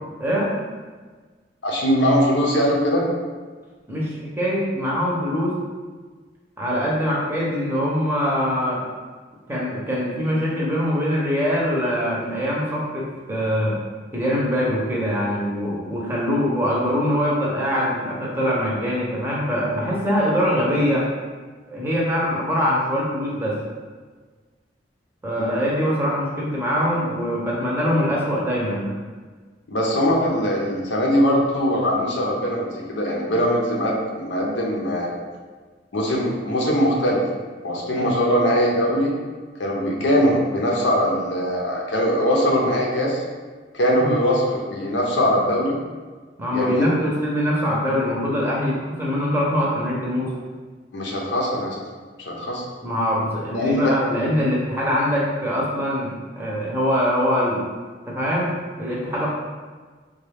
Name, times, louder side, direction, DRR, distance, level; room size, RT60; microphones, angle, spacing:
voice 1, 0.2-0.5 3.9-5.6 6.6-8.8 9.5-13.8 14.1-21.1 21.7-23.6 25.2-28.9 37.9-38.1 43.9-44.2 46.4-50.3 52.8-57.7 58.1-59.3, equal, 10° right, -5 dB, 0.7 m, -23 dB
voice 2, 1.6-3.0 25.4-25.5 29.7-35.1 35.9-37.2 37.6-39.1 39.6-43.2 43.7-45.8 46.5-46.9 50.9-51.8 52.3-52.6 53.5-53.9, equal, 75° left, -2 dB, 0.7 m, -21 dB
3.6 x 2.3 x 3.4 m, 1.4 s
head